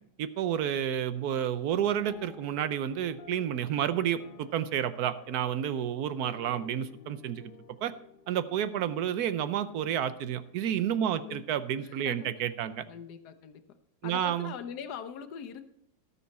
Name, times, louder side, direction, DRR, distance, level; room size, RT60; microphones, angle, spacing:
voice 1, 0.2-7.5 7.8-7.9 8.3-12.8 14.0-14.5, right 10 dB, 70° right, 13 dB, 1.2 m, -30 dB
sound 1, 2.1-11.8, left 6 dB, 60° left, 0.5 m, -53 dB
voice 2, 11.0-11.4 11.8-12.3 12.9-13.6 14.0-15.6, left 8 dB, 80° left, 8 dB, 1.4 m, -42 dB
17.5 x 7.1 x 4.2 m, 0.73 s
omnidirectional pair, 1.8 m